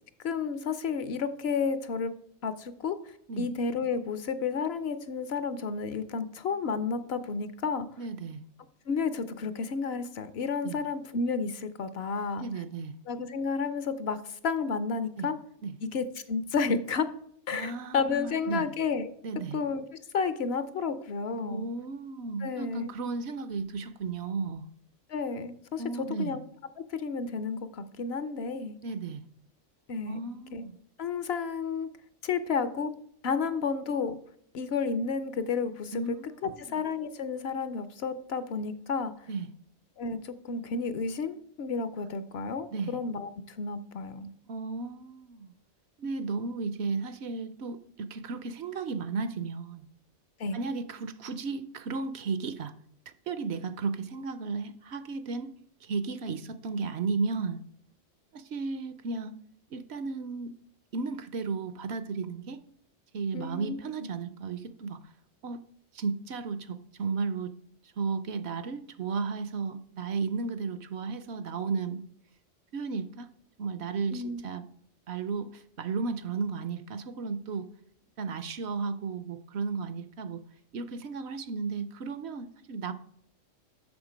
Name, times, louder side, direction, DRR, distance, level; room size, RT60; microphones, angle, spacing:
voice 1, 0.2-2.1 2.4-3.0 3.4-7.9 8.9-12.5 13.1-15.4 15.8-17.1 17.5-19.1 19.5-19.8 20.1-21.7 22.4-22.9 25.1-26.4 26.8-28.8 29.9-30.2 30.5-30.6 31.0-31.9 32.2-32.9 33.2-34.2 34.5-36.2 36.4-39.3 40.0-44.3 50.4-50.6 63.3-63.8 74.1-74.4, left 5 dB, 65° left, 13 dB, 0.8 m, -31 dB
voice 2, 8.0-8.4 10.6-10.8 12.4-12.9 15.2-15.3 15.6-15.7 17.5-18.7 19.2-19.6 21.5-24.6 25.8-26.4 28.8-29.2 30.1-30.8 35.9-36.8 39.3-39.5 42.7-43.0 44.5-45.5 46.0-49.9 50.5-52.7 53.3-55.5 55.8-57.6 58.3-59.3 59.7-60.5 60.9-62.6 63.1-65.1 65.4-65.6 65.9-67.6 67.8-72.1 72.7-73.3 73.6-74.7 75.1-77.7 78.2-80.4 80.7-82.9, right 4 dB, 65° right, 12 dB, 0.8 m, -34 dB
7.2 x 6.4 x 5.0 m, 0.67 s
omnidirectional pair, 1.3 m